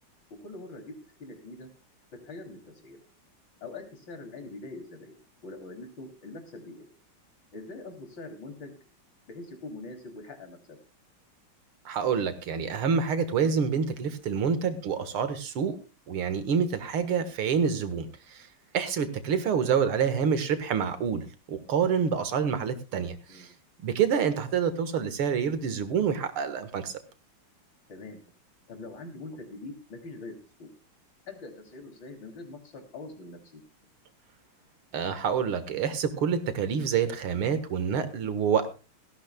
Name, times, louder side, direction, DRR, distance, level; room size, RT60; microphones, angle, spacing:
voice 1, 0.4-1.7 2.2-3.0 3.6-5.2 5.4-6.9 7.5-8.8 9.3-10.8 19.5-19.7 23.3-23.5 27.9-28.2 28.7-30.3 30.6-30.7 31.3-33.6, left 2 dB, 60° left, 5 dB, 3.7 m, -43 dB
voice 2, 11.9-15.8 16.1-18.1 18.3-18.4 18.7-23.5 23.8-26.9 34.9-38.7, right 7 dB, 75° right, 11 dB, 2.3 m, -27 dB
18.0 x 15.0 x 2.3 m, 0.32 s
omnidirectional pair, 2.4 m